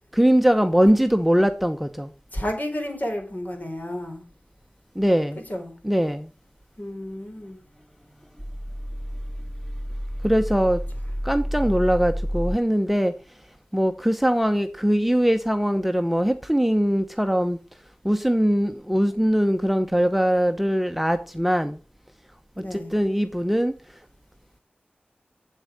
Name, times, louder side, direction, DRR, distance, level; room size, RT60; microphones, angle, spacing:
voice 1, 0.1-2.1 4.9-5.4 5.8-6.3 10.2-10.8 11.2-13.2 13.7-17.6 18.0-21.8 22.6-23.8, equal, 5° right, 0.9 m, -21 dB
voice 2, 2.3-4.3 5.5-5.7 6.8-7.6 22.6-22.9, left 1 dB, 50° left, 4.6 m, -31 dB
sound 1, 7.3-12.6, equal, 15° left, 3.6 m, -31 dB
8.3 x 8.1 x 6.5 m
wide cardioid pair, 55°, 3 cm